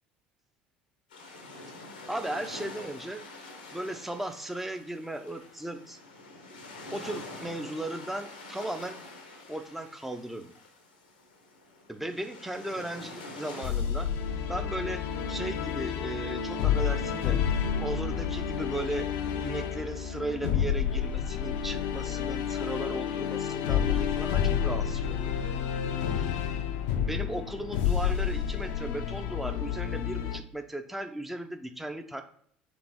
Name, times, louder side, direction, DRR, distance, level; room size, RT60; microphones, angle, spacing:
sound 1, 1.1-13.7, left 2 dB, 90° left, 0.9 m, -46 dB
voice 1, 2.1-3.2 3.7-6.0 6.9-9.0 9.5-10.5 11.9-14.1 14.5-15.0 15.3-17.4 17.8-19.1 19.4-25.4 27.1-32.2, right 1 dB, 5° right, 6 dB, 0.6 m, -36 dB
sound 2, 13.6-30.4, left 8 dB, 65° left, 0.5 m, -30 dB
5.0 x 2.6 x 3.6 m, 0.62 s
hypercardioid pair, 65°, 5 cm